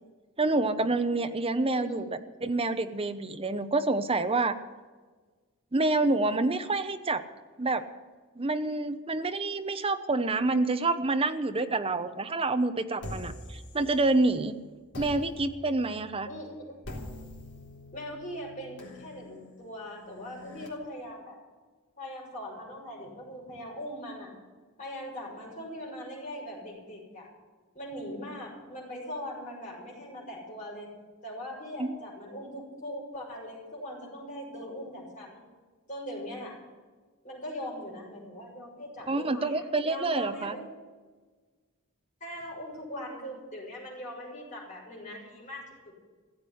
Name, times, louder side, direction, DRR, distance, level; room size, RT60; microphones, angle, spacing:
voice 1, 0.4-4.5 5.7-7.2 7.6-7.8 8.4-14.5 15.0-16.3 31.8-32.0 39.1-40.6, right 2 dB, 25° right, 9 dB, 0.8 m, -27 dB
voice 2, 1.6-2.1 16.2-16.9 17.9-21.4 22.0-24.3 24.8-27.3 27.7-30.9 31.2-35.4 35.9-36.6 37.2-40.6 42.2-45.9, equal, 35° left, -4 dB, 6.7 m, -40 dB
sound 1, 13.0-14.4 14.9-20.7, left 1 dB, 50° left, 3.9 m, -45 dB
16.0 x 8.2 x 10.0 m, 1.4 s
head